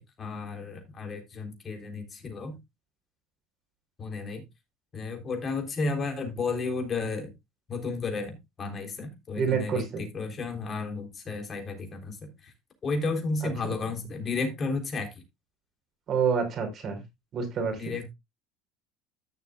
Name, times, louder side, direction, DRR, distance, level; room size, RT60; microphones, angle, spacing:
voice 1, 0.0-2.6 4.0-4.4 4.9-7.3 7.7-12.5 12.8-15.1 17.8-18.1, left 3 dB, 35° left, 4 dB, 3.6 m, -33 dB
voice 2, 9.4-10.0 16.1-17.0 17.3-17.9, right 6 dB, 45° right, 5 dB, 4.3 m, -28 dB
14.5 x 6.8 x 2.4 m, 0.20 s
supercardioid pair, 105°, 0 cm